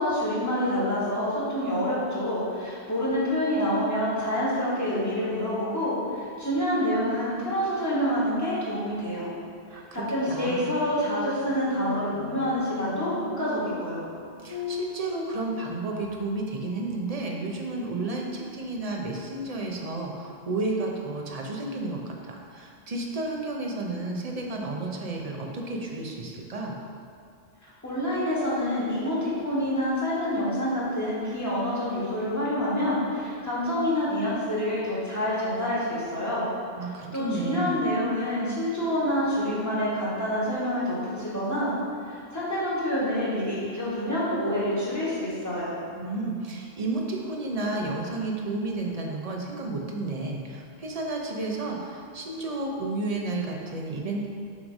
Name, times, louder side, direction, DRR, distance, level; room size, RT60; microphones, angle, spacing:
voice 1, 0.0-9.3 9.9-14.0 27.8-36.5 37.1-41.7 42.0-45.7, equal, 15° left, -9 dB, 1.7 m, -27 dB
voice 2, 9.7-10.7 14.4-26.8 36.8-37.8 45.9-54.3, right 2 dB, 40° right, 0 dB, 0.7 m, -32 dB
sound 1, 11.9-16.9, left 4 dB, 50° left, 0.4 m, -40 dB
7.2 x 3.2 x 5.2 m, 2.3 s
omnidirectional pair, 1.1 m